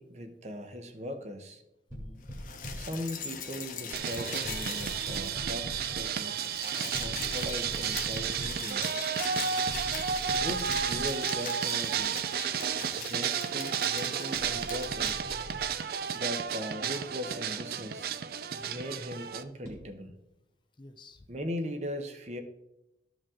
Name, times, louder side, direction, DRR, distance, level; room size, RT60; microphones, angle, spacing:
voice 1, 0.0-1.6 2.7-6.4 7.0-9.0 10.3-12.2 12.9-15.2 16.1-18.2 18.7-20.2 21.3-22.4, equal, 40° right, 7 dB, 0.8 m, -39 dB
voice 2, 1.9-2.3 6.9-7.3 9.3-9.6 12.7-13.0 18.5-18.8 20.8-21.3, left 2 dB, 25° left, 7 dB, 0.5 m, -53 dB
sound 1, 1.9-3.0 4.4-6.2 6.9-8.7 9.7-11.3 11.9-12.0 14.3-15.7 19.6-19.8, equal, 20° right, 1.8 m, -42 dB
sound 2, 2.2-5.6 5.8-5.9 6.2-15.2 16.1-16.2, left 7 dB, 45° left, 0.9 m, -42 dB
sound 3, 3.9-19.4, right 7 dB, 55° right, 0.4 m, -32 dB
13.0 x 5.1 x 3.7 m, 0.91 s
head